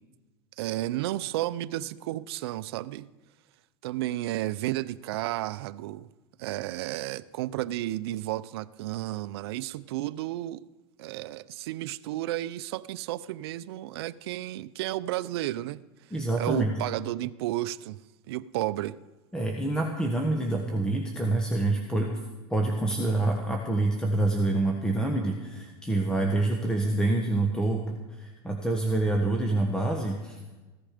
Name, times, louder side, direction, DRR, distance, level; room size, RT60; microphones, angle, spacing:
voice 1, 0.6-3.1 3.8-6.1 6.4-10.6 11.0-15.8 16.4-18.0 18.3-19.0, right 15 dB, 75° right, 15 dB, 0.5 m, -32 dB
voice 2, 16.1-16.7 19.3-22.2 22.5-30.6, right 2 dB, 5° left, 3 dB, 1.3 m, -27 dB
15.5 x 14.0 x 5.1 m, 1.2 s
supercardioid pair, 135°, 13 cm